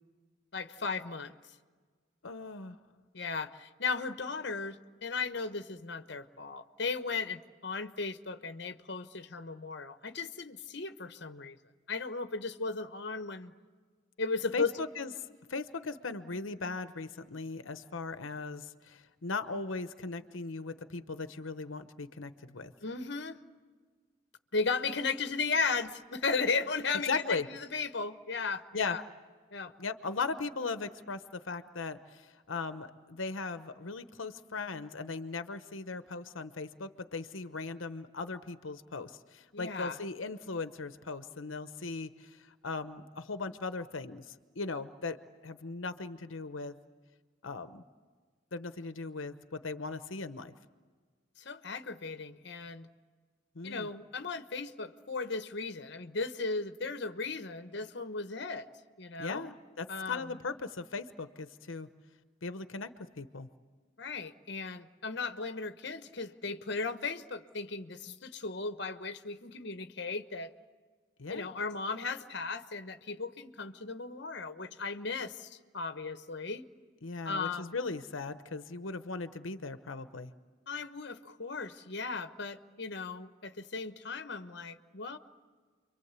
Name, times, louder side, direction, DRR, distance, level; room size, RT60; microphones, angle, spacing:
voice 1, 0.5-1.3 3.1-11.6 11.9-13.5 14.2-14.7 22.8-23.4 24.5-29.0 29.5-29.7 39.5-40.0 51.4-52.9 53.6-58.7 59.0-59.5 59.9-60.3 64.0-70.5 71.3-76.6 77.2-77.8 80.7-85.2, left 4 dB, 60° left, 8 dB, 1.1 m, -36 dB
voice 2, 2.2-2.8 14.5-15.1 15.5-22.7 27.1-27.5 28.7-29.0 29.8-45.2 45.4-46.7 47.4-47.8 48.5-50.5 53.5-53.9 59.2-61.9 62.4-63.5 71.2-71.5 77.0-80.3, left 4 dB, 80° left, 10 dB, 1.0 m, -38 dB
29.0 x 24.0 x 8.2 m, 1.5 s
head